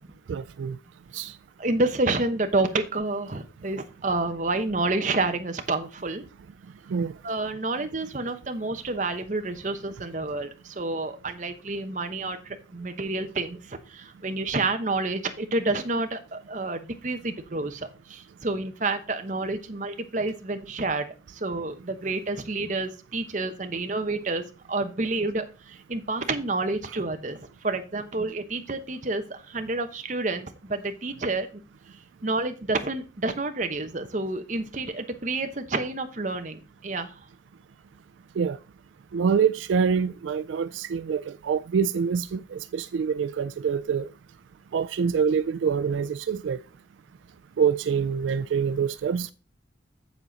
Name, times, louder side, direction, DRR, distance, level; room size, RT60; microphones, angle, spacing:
voice 1, 0.3-0.8 1.1-1.4 6.9-7.2 38.4-38.6 39.1-44.1 44.7-46.6 47.6-49.3, right 6 dB, 85° right, 0.3 m, -25 dB
voice 2, 1.6-6.3 7.2-31.6 32.2-37.1, right 2 dB, 40° right, 0.9 m, -29 dB
7.5 x 7.2 x 4.0 m
head